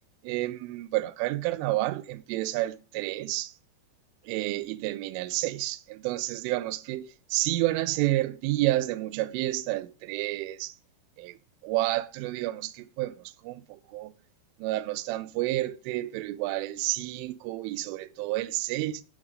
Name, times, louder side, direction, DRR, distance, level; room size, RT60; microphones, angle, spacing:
voice 1, 0.2-3.5 4.3-10.7 11.2-11.3 11.6-13.1 13.4-14.1 14.6-19.0, right 17 dB, 80° right, 3.2 m, -30 dB
9.9 x 8.6 x 5.2 m
omnidirectional pair, 5.9 m